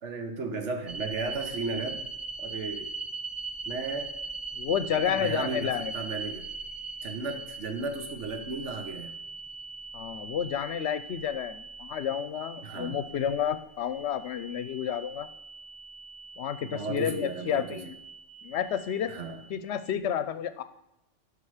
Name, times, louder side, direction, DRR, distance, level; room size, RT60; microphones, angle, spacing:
voice 1, 0.0-2.0 2.4-2.9 3.6-4.1 5.1-6.5 7.0-9.2 12.6-13.0 16.6-17.8 19.1-19.4, right 3 dB, 70° right, 6 dB, 1.5 m, -35 dB
sound 1, 0.9-19.9, right 4 dB, 35° right, 0.5 m, -41 dB
voice 2, 4.5-5.9 9.9-15.3 16.4-18.0 18.4-19.2 19.5-20.6, left 9 dB, 70° left, 13 dB, 0.9 m, -30 dB
11.5 x 5.4 x 4.9 m, 0.88 s
omnidirectional pair, 1.2 m